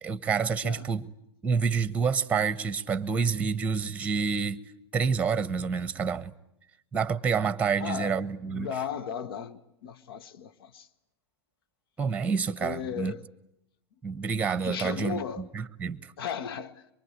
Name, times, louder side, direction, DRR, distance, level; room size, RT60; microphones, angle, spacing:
voice 1, 0.0-1.1 1.4-4.6 4.9-6.3 6.9-8.7 12.0-13.1 14.0-16.1, right 5 dB, 10° right, 1.1 m, -28 dB
voice 2, 7.8-8.2 8.5-10.9 12.6-13.2 14.6-15.4 16.2-16.8, left 7 dB, 65° left, 1.3 m, -36 dB
24.0 x 24.0 x 9.5 m
figure-of-eight pair, 100°, 13 cm